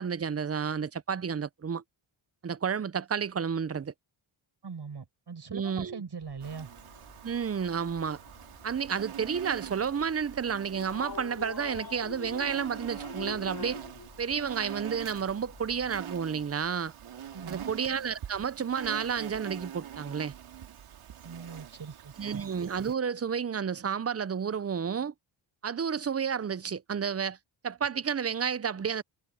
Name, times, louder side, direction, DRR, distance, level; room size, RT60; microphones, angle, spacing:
voice 1, 0.0-1.8 2.4-3.9 5.5-6.0 7.2-8.2 8.6-13.8 14.2-16.9 17.5-20.3 22.2-25.1 25.6-27.4 27.6-29.0, right 7 dB, 30° right, 0.6 m, -31 dB
voice 2, 4.6-6.7 17.3-17.7 21.2-22.4, right 5 dB, 55° right, 8.0 m, -41 dB
sound 1, 6.2-16.0, left 5 dB, 50° left, 4.2 m, -47 dB
Insect, 6.4-22.9, right 9 dB, 85° right, 3.1 m, -44 dB
cardioid pair, 75°, 49 cm